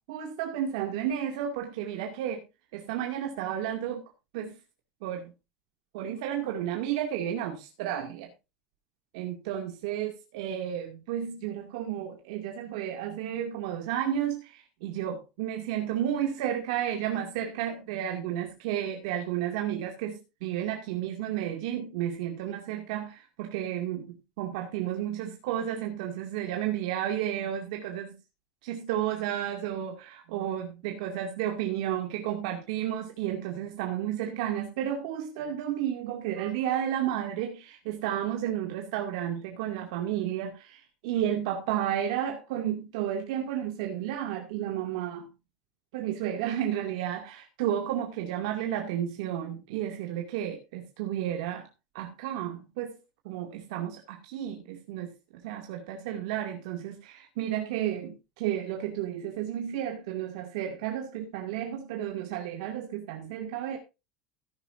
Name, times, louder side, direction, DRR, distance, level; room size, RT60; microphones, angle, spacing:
voice 1, 0.1-2.4 2.7-4.0 4.3-4.6 5.0-5.3 5.9-8.3 9.1-28.1 28.6-45.3 45.9-51.7 51.9-53.0 53.2-55.1 55.4-63.8, right 10 dB, 70° right, 2.4 m, -32 dB
15.0 x 11.0 x 2.6 m
cardioid pair, 175°, 4 cm